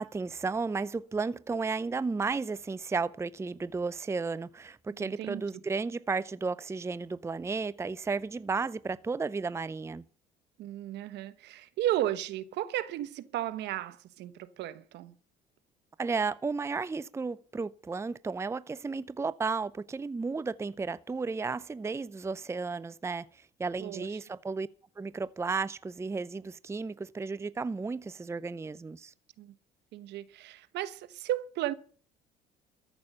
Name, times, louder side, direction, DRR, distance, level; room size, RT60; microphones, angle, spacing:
voice 1, 0.0-10.0 16.0-23.3 23.6-24.7 25.0-29.1, right 4 dB, 15° right, 0.5 m, -33 dB
voice 2, 5.0-5.4 10.6-15.1 23.8-24.1 29.4-29.5 29.9-31.7, right 13 dB, 70° right, 1.1 m, -34 dB
14.0 x 6.2 x 9.9 m
supercardioid pair, 75°, 18 cm